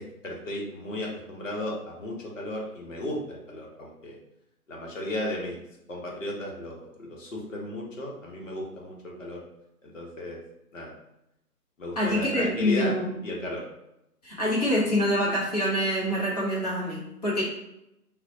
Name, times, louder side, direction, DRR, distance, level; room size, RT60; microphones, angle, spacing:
voice 1, 0.0-4.2 4.7-5.6 5.9-9.4 9.8-10.4 10.7-10.9 11.8-13.0 13.2-13.6, left 1 dB, 55° left, -2 dB, 1.0 m, -35 dB
voice 2, 12.0-13.2 14.2-17.4, equal, 25° left, -6 dB, 0.8 m, -26 dB
3.9 x 2.2 x 2.7 m, 0.85 s
figure-of-eight pair, 150°, 47 cm